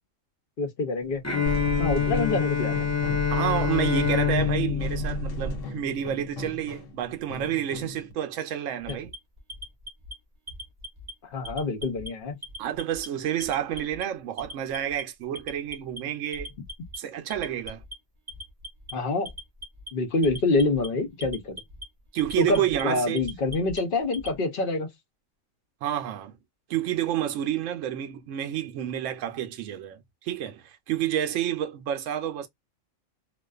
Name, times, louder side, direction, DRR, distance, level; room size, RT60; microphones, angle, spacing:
voice 1, 0.6-1.2 1.8-2.8 8.9-9.0 11.3-12.4 18.9-19.3 19.9-21.6 22.4-24.9, left 3 dB, 50° left, 0.8 m, -26 dB
Bowed string instrument, 1.2-6.1, left 7 dB, 15° left, 0.6 m, -27 dB
sound 1, 1.5-8.1, equal, 85° left, 1.2 m, -34 dB
voice 2, 3.3-9.1 12.6-16.5 17.0-17.8 22.1-23.2 25.8-26.4 26.7-32.5, right 11 dB, 75° right, 0.9 m, -29 dB
Alarm, 8.8-10.1 10.5-11.1 11.4-12.1 12.4-13.1 13.4-14.0 14.4-15.0 15.4-16.0 16.3-17.0 17.3-17.9 18.3-18.9 19.3-19.9 20.2-20.9 21.2-21.8 22.2-22.8 23.2-24.3, left 1 dB, 30° right, 0.7 m, -39 dB
2.4 x 2.3 x 2.3 m
omnidirectional pair, 1.3 m